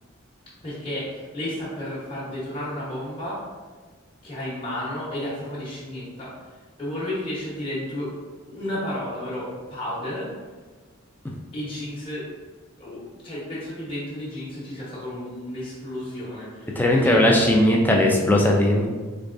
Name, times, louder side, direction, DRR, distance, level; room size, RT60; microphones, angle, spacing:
voice 1, 0.6-3.4 4.2-8.1 8.4-10.3 11.5-12.3 12.8-17.2, left 1 dB, 25° left, -9 dB, 1.0 m, -32 dB
voice 2, 16.8-18.9, left 1 dB, 10° left, 0 dB, 0.4 m, -18 dB
4.0 x 3.3 x 2.5 m, 1.4 s
head